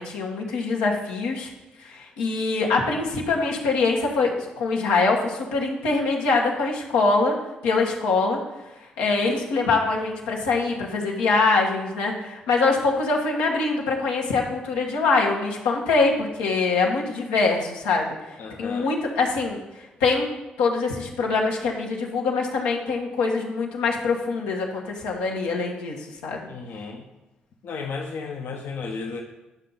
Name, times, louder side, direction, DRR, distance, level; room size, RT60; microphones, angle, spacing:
voice 1, 0.0-1.5 1.8-7.3 7.6-8.4 9.0-20.3 20.6-26.5, left 3 dB, 85° left, -1 dB, 1.3 m, -24 dB
voice 2, 18.4-18.9 26.5-27.0 27.6-29.2, left 4 dB, 65° left, 0 dB, 0.9 m, -33 dB
10.5 x 5.8 x 3.9 m, 1.1 s
hypercardioid pair, 40°, 4 cm